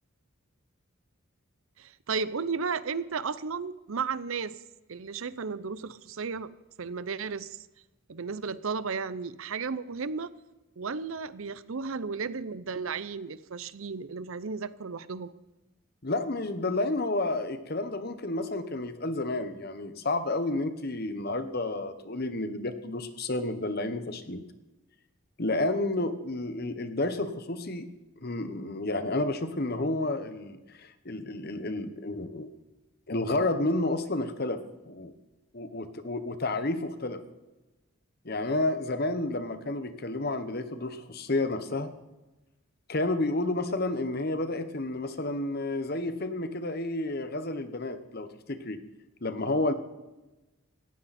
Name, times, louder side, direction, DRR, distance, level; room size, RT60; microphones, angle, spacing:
voice 1, 1.8-4.6 4.9-6.5 6.8-7.7 8.1-10.3 10.8-15.3, right 5 dB, 75° right, 17 dB, 0.7 m, -34 dB
voice 2, 16.0-24.4 25.4-27.9 28.2-32.5 33.1-35.1 35.5-37.2 38.2-41.9 42.9-48.8 49.2-49.7, left 2 dB, 45° left, 10 dB, 1.2 m, -31 dB
18.0 x 15.0 x 4.3 m, 1.1 s
head